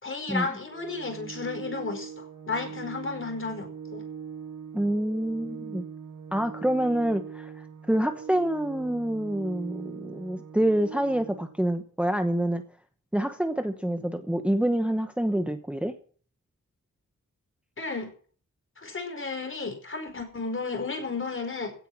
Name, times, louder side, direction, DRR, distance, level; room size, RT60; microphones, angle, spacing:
voice 1, 0.0-4.0 17.8-18.1 18.8-21.7, left 4 dB, 40° left, 5 dB, 4.9 m, -33 dB
Organ, 0.7-11.7, right 7 dB, 70° right, 2.3 m, -41 dB
voice 2, 4.7-5.8 6.3-12.6 13.1-15.9, right 1 dB, 5° right, 7 dB, 1.0 m, -27 dB
16.0 x 9.1 x 6.1 m, 0.44 s
wide cardioid pair, 130°, 31 cm